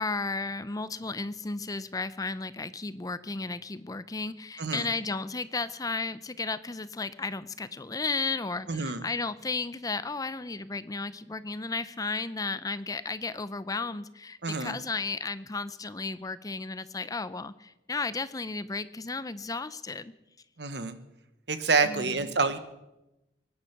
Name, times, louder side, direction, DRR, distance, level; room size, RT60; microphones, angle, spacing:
voice 1, 0.0-20.1 21.8-22.4, left 3 dB, 20° left, 14 dB, 0.5 m, -34 dB
voice 2, 8.7-9.0 14.4-14.8 20.6-21.0 21.5-22.6, right 4 dB, 70° right, 10 dB, 1.2 m, -27 dB
23.5 x 10.0 x 5.9 m, 0.95 s
head